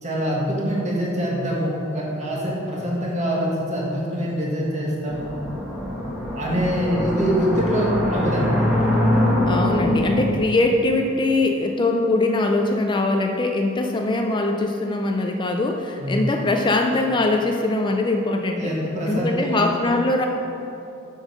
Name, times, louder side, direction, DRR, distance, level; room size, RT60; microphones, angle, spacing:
voice 1, 0.0-5.3 6.4-8.7 16.0-16.2 18.6-19.6, equal, 35° right, -4 dB, 1.8 m, -24 dB
sound 1, 5.1-10.0, left 1 dB, 5° right, 1.6 m, -23 dB
voice 2, 9.5-18.7 19.1-20.3, left 2 dB, 25° left, 3 dB, 0.4 m, -22 dB
7.4 x 5.4 x 6.2 m, 2.9 s
head